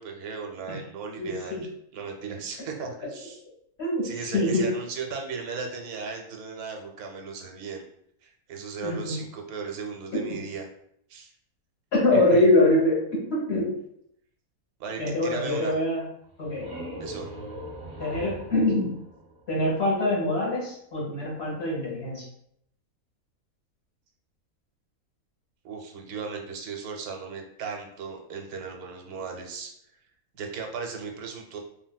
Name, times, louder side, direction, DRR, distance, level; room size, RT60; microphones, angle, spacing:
voice 1, 0.0-3.4 4.0-7.8 8.2-10.7 11.1-11.3 12.1-12.4 14.8-15.8 17.0-17.3 25.6-29.7 30.4-31.6, right 5 dB, 85° right, 2 dB, 1.1 m, -36 dB
voice 2, 1.2-1.7 3.8-4.7 8.8-9.2 10.1-10.4 11.9-13.8 15.0-16.1 16.4-16.7 18.0-18.9 19.5-22.2, left 2 dB, 50° left, -5 dB, 1.2 m, -24 dB
sound 1, 16.2-19.9, right 1 dB, 30° right, 0.4 m, -40 dB
3.2 x 2.6 x 2.2 m, 0.72 s
omnidirectional pair, 1.5 m